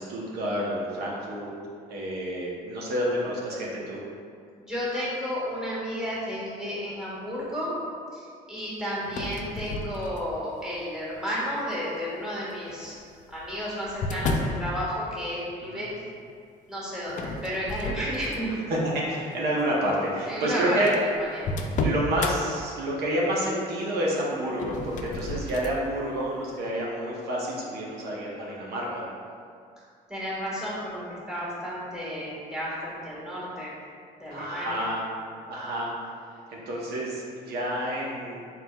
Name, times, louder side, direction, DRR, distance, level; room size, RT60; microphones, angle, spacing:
voice 1, 0.0-1.5 1.9-4.0 9.1-9.3 15.6-15.8 18.7-20.9 21.7-29.0 34.3-35.0 35.5-35.9 36.5-38.4, right 1 dB, 70° right, -4 dB, 0.8 m, -29 dB
voice 2, 4.7-7.8 8.1-13.0 13.3-15.9 16.7-18.5 20.3-21.4 30.1-33.7 34.2-34.8, equal, 5° right, -7 dB, 1.4 m, -32 dB
sound 1, 9.0-10.5 11.2-11.6 12.7-14.6 17.1-18.6 19.1-19.4 20.1-20.2 20.4-20.5 20.8-22.4 24.5-25.8, left 2 dB, 50° left, 0.4 m, -32 dB
4.4 x 4.0 x 2.3 m, 2.3 s
cardioid pair, 110°, 17 cm